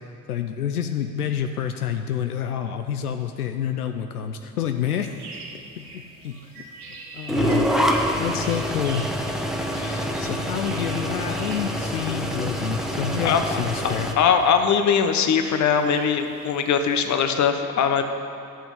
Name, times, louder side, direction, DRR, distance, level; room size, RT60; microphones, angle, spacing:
voice 1, 0.3-5.1 5.8-6.7 7.1-7.7 7.9-9.0 9.8-9.9 10.2-14.1, left 9 dB, 85° left, 7 dB, 0.6 m, -28 dB
sound 1, 4.8-17.2, right 3 dB, 80° right, 1.5 m, -43 dB
sound 2, 7.3-14.1, equal, ahead, 1.1 m, -26 dB
voice 2, 14.2-18.0, left 7 dB, 40° left, 8 dB, 1.1 m, -21 dB
12.5 x 6.2 x 8.1 m, 2.5 s
figure-of-eight pair, 60°, 44 cm